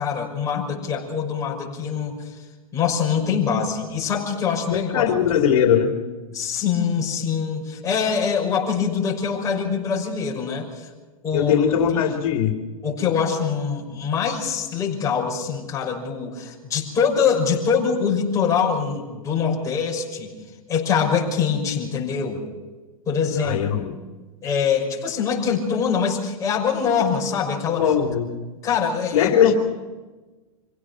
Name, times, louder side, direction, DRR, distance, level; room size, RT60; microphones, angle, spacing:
voice 1, 0.0-2.3 2.7-5.1 6.3-10.9 11.2-11.5 11.9-12.1 12.8-20.3 20.7-22.4 23.1-23.6 24.4-27.9 28.6-29.5, left 6 dB, 20° left, -2 dB, 6.0 m, -24 dB
voice 2, 4.7-5.9 11.3-12.5 23.4-23.9 27.8-28.3 29.1-29.5, left 8 dB, 75° left, 3 dB, 2.6 m, -20 dB
26.5 x 17.0 x 6.2 m, 1.2 s
hypercardioid pair, 140°, 18 cm